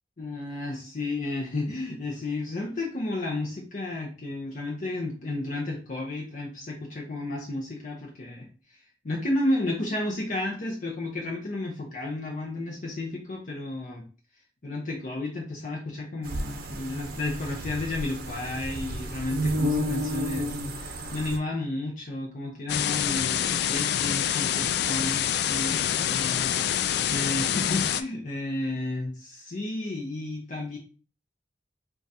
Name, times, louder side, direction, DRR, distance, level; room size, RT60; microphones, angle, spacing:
voice 1, 0.2-8.5 8.7-14.0 14.6-30.8, left 2 dB, 45° left, -2 dB, 0.7 m, -32 dB
sound 1, 16.2-21.4, equal, 55° right, 0.6 m, -31 dB
sound 2, 22.7-28.0, left 10 dB, 65° left, 0.3 m, -26 dB
3.8 x 2.4 x 4.0 m, 0.38 s
head